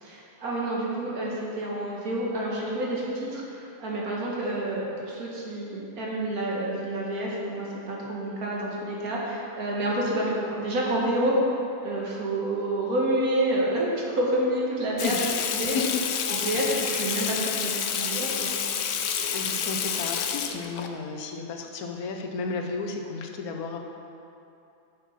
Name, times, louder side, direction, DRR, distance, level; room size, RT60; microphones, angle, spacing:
voice 1, 0.0-11.4 11.8-15.1 15.5-15.8 16.3-18.6, right 1 dB, 85° right, -4 dB, 2.2 m, -28 dB
Water tap faucet / Sink (filling or washing), 15.0-20.9, left 8 dB, 65° left, 0.9 m, -29 dB
voice 2, 19.3-23.8, left 4 dB, 85° left, 3 dB, 1.4 m, -33 dB
8.3 x 7.2 x 5.7 m, 2.7 s
omnidirectional pair, 1.5 m